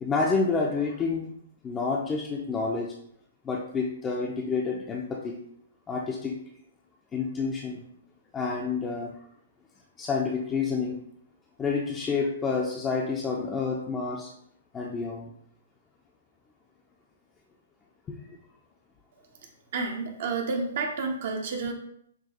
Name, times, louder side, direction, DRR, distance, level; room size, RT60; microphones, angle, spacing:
voice 1, 0.0-1.3 1.6-2.9 3.4-5.4 5.9-6.4 7.1-7.8 8.3-9.1 10.0-11.0 11.6-14.3 14.7-15.3 18.1-18.2, left 4 dB, 20° left, 0 dB, 0.4 m, -29 dB
voice 2, 19.7-21.7, right 4 dB, 60° right, 2 dB, 0.6 m, -30 dB
5.9 x 2.3 x 2.8 m, 0.69 s
hypercardioid pair, 125°, 0 cm